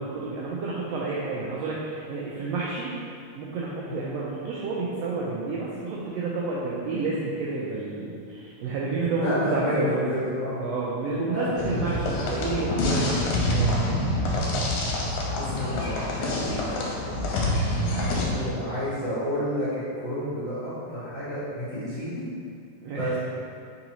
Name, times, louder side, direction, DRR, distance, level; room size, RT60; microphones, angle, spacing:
voice 1, 0.0-2.9 3.3-10.2 10.6-13.8 14.2-14.4 15.0-15.2 17.8-18.7 22.8-23.2, right 3 dB, 85° right, -5 dB, 1.4 m, -30 dB
voice 2, 9.2-10.7 11.3-12.2 15.3-17.2 17.8-22.3 22.9-23.2, equal, 45° left, -13 dB, 1.8 m, -31 dB
sound 1, 11.6-18.3, left 1 dB, 80° left, 2.0 m, -26 dB
4.7 x 3.9 x 2.9 m, 2.4 s
omnidirectional pair, 3.4 m